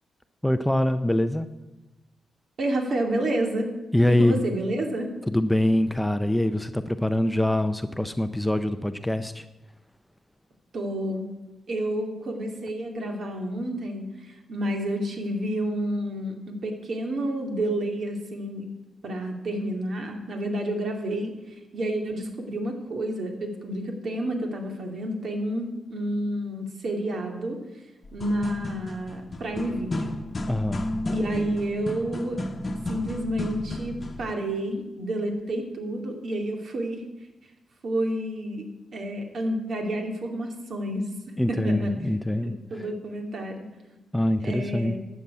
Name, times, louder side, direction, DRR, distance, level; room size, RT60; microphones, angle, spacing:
voice 1, 0.4-1.5 3.9-4.4 5.3-9.4 30.5-30.9 41.4-42.8 44.1-45.0, left 1 dB, 5° left, 10 dB, 0.6 m, -24 dB
voice 2, 2.6-3.7 4.1-5.1 10.7-11.3 11.7-18.6 19.0-27.6 28.1-30.2 31.1-32.4 32.9-37.0 37.8-38.6 38.9-41.1 41.5-41.9 42.4-43.7 44.4-45.0, right 1 dB, 55° right, 3 dB, 2.5 m, -29 dB
sound 1, 28.0-34.3, left 1 dB, 30° left, 1.1 m, -33 dB
12.0 x 7.0 x 8.4 m, 1.0 s
cardioid pair, 100°, 0 cm